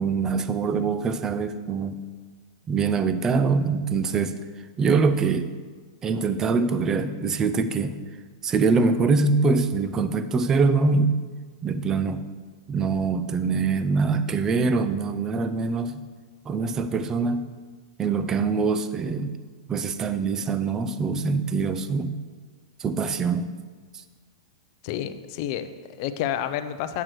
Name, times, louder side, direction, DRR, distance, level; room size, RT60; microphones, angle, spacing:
voice 1, 0.0-2.0 2.7-4.3 4.8-5.5 6.0-8.0 8.4-11.1 11.6-12.3 12.7-16.0 16.5-17.5 18.0-19.4 19.7-22.1 22.8-23.5, right 4 dB, 20° right, 11 dB, 0.4 m, -24 dB
voice 2, 24.8-27.0, left 10 dB, 50° left, 11 dB, 0.5 m, -30 dB
8.0 x 6.0 x 4.6 m, 1.5 s
supercardioid pair, 145°, 3 cm